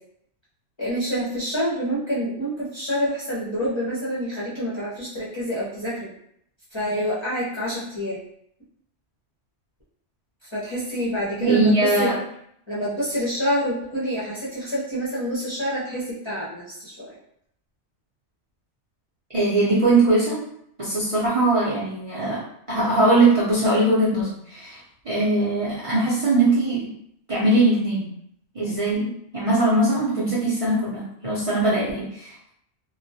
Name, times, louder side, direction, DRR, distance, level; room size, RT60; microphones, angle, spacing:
voice 1, 0.8-6.1 6.7-8.2 10.5-12.1 12.7-17.1, equal, 30° left, -9 dB, 0.5 m, -27 dB
voice 2, 11.4-12.2 19.3-20.4 20.8-22.4 22.7-24.8 25.0-26.9 27.3-28.1 28.5-32.5, right 2 dB, 40° right, -9 dB, 0.5 m, -21 dB
2.2 x 2.1 x 2.6 m, 0.71 s
omnidirectional pair, 1.2 m